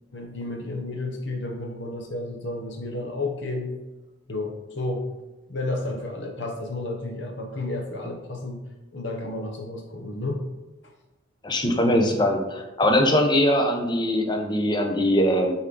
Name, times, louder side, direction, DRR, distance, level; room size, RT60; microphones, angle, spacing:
voice 1, 0.1-3.8 4.3-5.0 5.5-8.6 8.9-10.4, left 2 dB, 60° left, 2 dB, 1.1 m, -31 dB
voice 2, 11.4-15.5, left 1 dB, 20° left, 3 dB, 0.7 m, -21 dB
7.3 x 4.6 x 3.8 m, 1.1 s
head